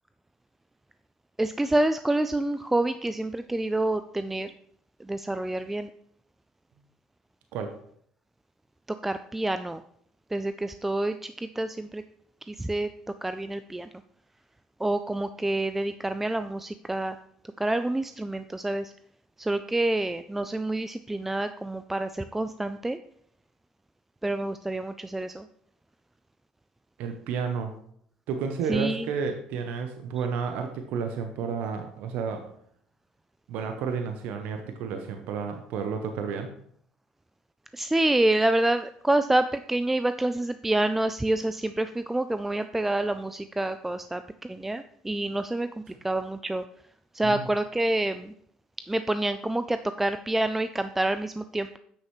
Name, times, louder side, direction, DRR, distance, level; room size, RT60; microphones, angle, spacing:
voice 1, 1.4-4.5 5.0-5.9 9.0-9.8 10.3-12.0 12.5-12.9 13.2-13.9 14.8-17.2 17.6-18.9 19.4-23.0 24.2-25.5 28.7-29.1 37.7-45.7 46.0-46.6 47.1-48.3 48.9-51.8, right 1 dB, 10° right, 10 dB, 0.3 m, -27 dB
voice 2, 27.0-27.7 28.3-32.4 33.5-36.5 47.2-47.5, right 6 dB, 75° right, 6 dB, 0.7 m, -31 dB
8.1 x 6.4 x 3.1 m, 0.67 s
supercardioid pair, 80°, 3 cm